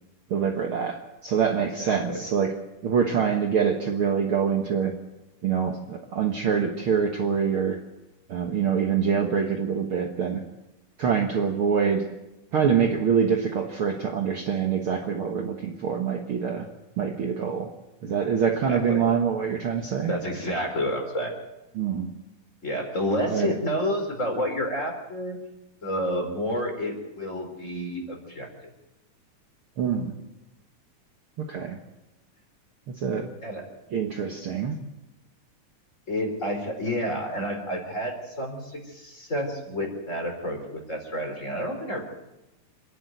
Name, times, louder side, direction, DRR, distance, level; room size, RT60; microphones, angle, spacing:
voice 1, 0.3-2.5 2.8-4.9 5.4-7.8 8.3-10.4 11.0-12.0 12.5-16.7 17.0-17.7 18.0-20.1 21.8-22.1 23.3-23.6 29.8-30.2 31.4-31.8 32.9-33.3 33.9-34.8, right 7 dB, 55° right, 3 dB, 1.8 m, -25 dB
voice 2, 1.8-2.2 18.6-19.0 20.1-21.3 22.6-25.4 25.8-28.5 33.4-33.7 36.1-42.0, equal, 25° left, 3 dB, 4.0 m, -29 dB
27.0 x 11.0 x 9.1 m, 0.98 s
omnidirectional pair, 3.5 m